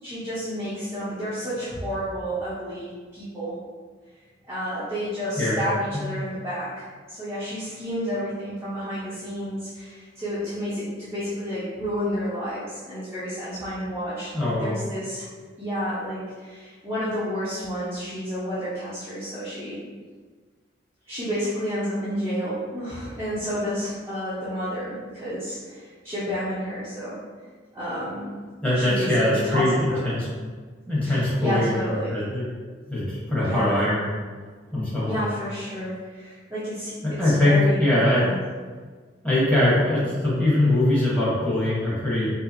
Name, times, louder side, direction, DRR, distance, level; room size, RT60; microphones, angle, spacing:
voice 1, 0.0-3.5 4.5-15.3 15.6-19.8 21.1-27.2 27.7-28.4 28.7-30.2 31.0-32.2 33.4-33.8 34.7-38.4, equal, 15° right, -12 dB, 0.7 m, -30 dB
voice 2, 14.3-14.8 28.6-30.3 30.9-32.4 32.9-34.1 34.7-35.3 37.0-38.2 39.2-42.3, left 1 dB, 5° left, -9 dB, 1.2 m, -22 dB
4.6 x 2.0 x 2.9 m, 1.5 s
head